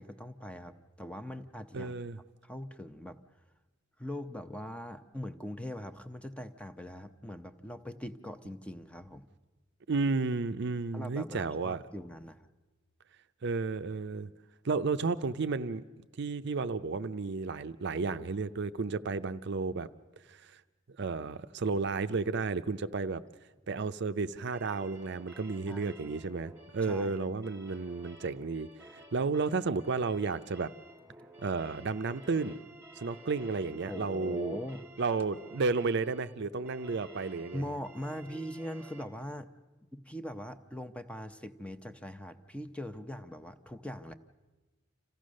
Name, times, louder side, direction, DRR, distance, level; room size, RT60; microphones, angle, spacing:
voice 1, 0.0-1.9 2.4-3.2 4.0-9.3 10.9-12.5 25.7-25.9 26.8-27.1 33.9-34.9 37.5-39.5 39.9-44.1, left 1 dB, 5° left, 0.7 m, -41 dB
voice 2, 1.7-2.2 9.9-11.8 13.4-14.3 14.6-15.8 16.2-19.9 21.0-23.2 23.7-28.7 29.1-30.7 31.4-32.6 33.0-34.6 35.0-37.6, right 4 dB, 60° right, 0.6 m, -32 dB
sound 1, 24.5-39.0, right 2 dB, 10° right, 1.4 m, -53 dB
26.5 x 15.5 x 6.4 m
head